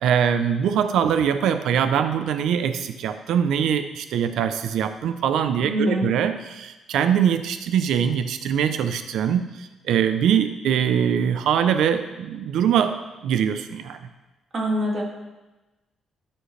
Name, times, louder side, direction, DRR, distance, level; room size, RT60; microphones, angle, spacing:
voice 1, 0.0-13.0 13.2-14.0, right 8 dB, 80° right, 9 dB, 0.4 m, -22 dB
voice 2, 5.7-6.2 14.5-15.0, equal, 45° right, -1 dB, 2.0 m, -24 dB
10.5 x 6.3 x 3.2 m, 1.1 s
cardioid pair, 90°, 0 cm